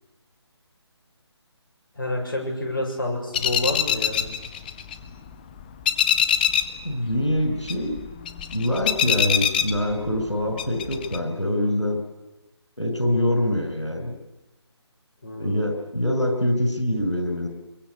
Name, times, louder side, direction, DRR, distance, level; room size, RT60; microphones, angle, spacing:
voice 1, 2.0-4.3 15.2-15.6, left 1 dB, 45° left, 1 dB, 7.0 m, -28 dB
sound 1, 3.3-5.3 5.6-6.8 7.1-10.3 10.6-11.2, left 8 dB, 20° left, 0.8 m, -24 dB
voice 2, 6.8-8.0 8.5-12.0 12.8-14.2 15.4-17.5, left 1 dB, 90° left, 5 dB, 6.0 m, -24 dB
24.0 x 22.5 x 8.3 m, 1.0 s
figure-of-eight pair, 150°, 15 cm